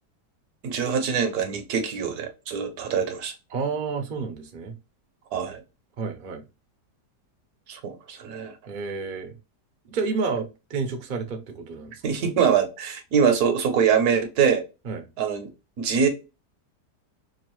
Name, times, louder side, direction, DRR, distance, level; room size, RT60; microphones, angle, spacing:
voice 1, 0.6-3.3 5.3-5.6 7.7-8.6 12.0-14.6 15.2-15.5 15.8-16.1, right 7 dB, 65° right, 1.2 m, -23 dB
voice 2, 3.5-4.7 6.0-6.4 8.7-9.3 9.9-11.9 14.8-15.0, right 4 dB, 45° right, 0.6 m, -30 dB
5.3 x 2.4 x 3.0 m
omnidirectional pair, 1.9 m